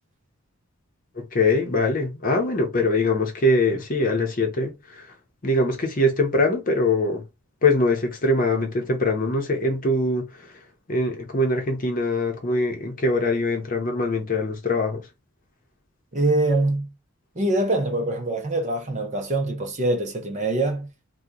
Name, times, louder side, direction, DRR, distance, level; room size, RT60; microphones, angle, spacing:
voice 1, 1.2-5.1 5.4-7.2 7.6-10.5 10.9-15.1, left 2 dB, 40° left, 0.8 m, -23 dB
voice 2, 16.1-16.9 17.4-20.9, right 2 dB, 35° right, 0.6 m, -24 dB
2.9 x 2.2 x 3.7 m
head